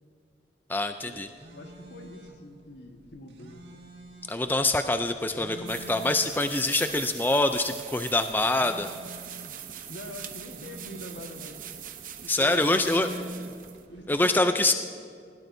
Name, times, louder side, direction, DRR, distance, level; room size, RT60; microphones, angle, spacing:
voice 1, 0.7-1.3 4.3-8.9 12.3-13.1 14.1-14.7, left 2 dB, 10° left, 8 dB, 0.4 m, -25 dB
sound 1, 1.1-14.1, right 1 dB, 80° right, 1.7 m, -47 dB
voice 2, 1.5-3.6 9.9-11.6 12.2-13.4 13.9-14.7, left 1 dB, 80° left, 3 dB, 1.5 m, -44 dB
sound 2, 5.6-13.8, right 9 dB, 50° right, 0.8 m, -42 dB
20.0 x 17.0 x 2.7 m, 2.1 s
head